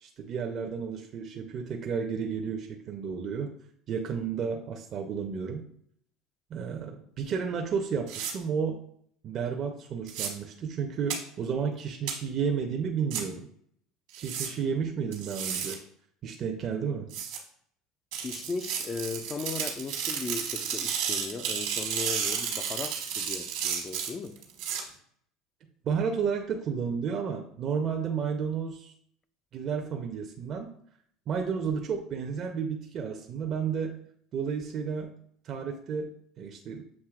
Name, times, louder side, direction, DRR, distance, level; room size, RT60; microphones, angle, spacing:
voice 1, 0.0-3.5 3.9-5.6 6.5-8.8 9.2-13.5 14.2-15.8 16.2-17.1 25.8-28.9 29.5-30.7 31.3-34.0 34.3-35.1 35.4-36.8, right 6 dB, 45° right, 0.5 m, -32 dB
sound 1, 8.1-8.3 10.1-10.3 11.1-11.2 12.1-12.2 13.1-13.2 14.1-14.5 15.1-15.8 17.1-17.4 18.1-24.8, right 8 dB, 75° right, 1.2 m, -32 dB
voice 2, 18.2-24.4, left 5 dB, 30° left, 0.3 m, -37 dB
7.2 x 2.7 x 2.3 m
supercardioid pair, 105°, 0 cm